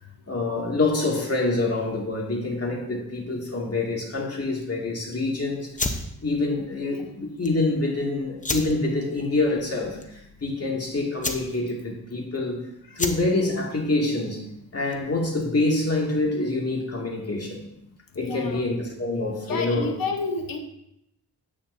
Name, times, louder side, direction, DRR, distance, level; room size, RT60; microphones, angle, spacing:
voice 1, 0.3-12.6 13.0-14.4 14.7-17.6 18.2-19.9, left 2 dB, 35° left, -1 dB, 2.3 m, -26 dB
sound 1, 5.7-15.2, left 2 dB, 20° left, 0.9 m, -35 dB
voice 2, 18.2-18.6 19.5-20.6, left 3 dB, 60° left, 3 dB, 1.1 m, -30 dB
9.7 x 8.5 x 2.7 m, 0.83 s
cardioid pair, 85°, 39 cm